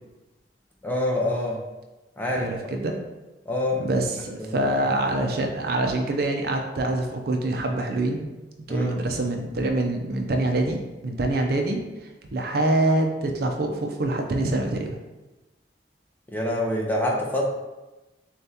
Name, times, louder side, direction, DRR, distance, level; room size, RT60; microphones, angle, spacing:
voice 1, 0.8-1.6 2.2-2.7 3.5-3.8 4.4-4.7 8.7-9.0 16.3-17.4, left 1 dB, 10° left, -2 dB, 0.6 m, -26 dB
voice 2, 2.3-3.0 3.7-8.3 8.7-11.8 12.3-15.0, right 2 dB, 60° right, 3 dB, 0.5 m, -25 dB
6.7 x 2.4 x 2.8 m, 1.1 s
head